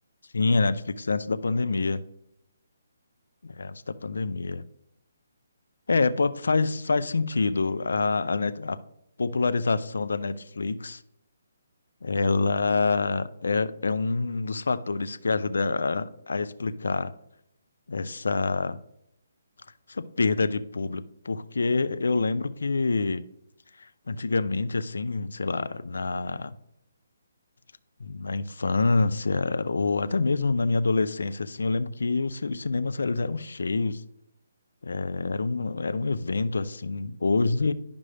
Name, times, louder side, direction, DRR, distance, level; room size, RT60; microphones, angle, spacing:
voice 1, 0.3-2.0 3.4-4.7 5.9-8.8 9.2-11.0 12.0-17.1 17.9-18.8 19.9-23.2 23.8-26.5 28.0-34.0 34.8-37.7, left 3 dB, 80° left, 0.5 m, -26 dB
11.0 x 5.2 x 3.4 m
hypercardioid pair, 160°, 0 cm